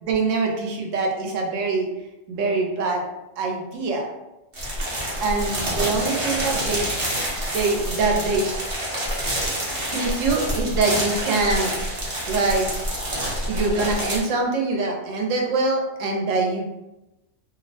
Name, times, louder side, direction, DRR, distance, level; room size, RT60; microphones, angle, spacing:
voice 1, 0.0-1.9 2.3-3.0 3.4-4.1 5.2-6.9 7.5-8.5 9.9-11.7 12.3-12.7 13.5-16.8, right 3 dB, 80° right, 1 dB, 0.9 m, -24 dB
sound 1, 4.5-14.2, equal, 35° right, 0.5 m, -27 dB
2.6 x 2.0 x 2.6 m, 0.97 s
omnidirectional pair, 1.3 m